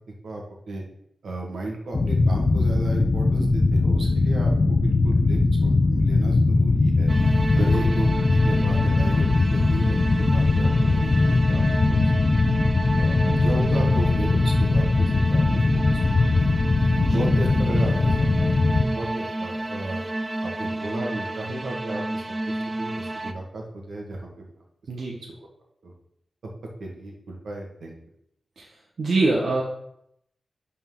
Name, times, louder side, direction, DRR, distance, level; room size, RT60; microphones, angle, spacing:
voice 1, 0.2-0.8 1.2-7.1 7.6-12.4 13.0-16.3 17.1-20.0 20.4-24.5 25.2-25.3 25.8-25.9 26.8-27.9, right 2 dB, 70° right, 0 dB, 1.7 m, -35 dB
sound 1, 1.9-18.8, left 3 dB, 35° left, 0.6 m, -20 dB
sound 2, 7.1-23.3, right 1 dB, 20° right, 0.4 m, -31 dB
voice 2, 7.5-8.0 17.0-17.2 24.9-25.2 28.6-28.7 29.0-29.6, right 2 dB, 55° right, -4 dB, 1.1 m, -25 dB
11.5 x 4.3 x 3.8 m, 0.76 s
wide cardioid pair, 170°, 0 cm